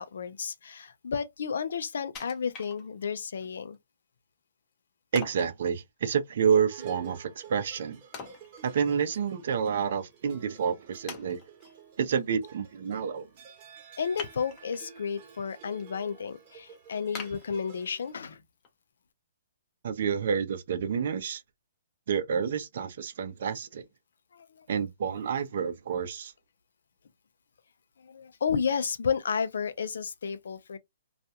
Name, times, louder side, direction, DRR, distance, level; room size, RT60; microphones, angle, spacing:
voice 1, 0.0-3.8 14.0-18.4 24.3-24.7 28.0-30.8, left 6 dB, 75° left, 0.5 m, -32 dB
Wood, 2.1-3.3 3.7-3.8 5.1-5.6 8.1-9.2 9.6-9.7 10.4-10.5 11.1-11.7 14.1-14.9 15.4-15.8 16.2-16.3 17.1-18.2 18.6-18.7, left 5 dB, 25° left, 0.7 m, -44 dB
voice 2, 5.1-8.0 8.6-11.4 12.0-13.3 19.8-21.4 22.1-23.8 24.7-26.3, right 7 dB, 60° right, 0.6 m, -29 dB
sound 1, 6.7-18.1, right 8 dB, 35° right, 1.0 m, -51 dB
2.4 x 2.2 x 2.7 m
hypercardioid pair, 150°, 0 cm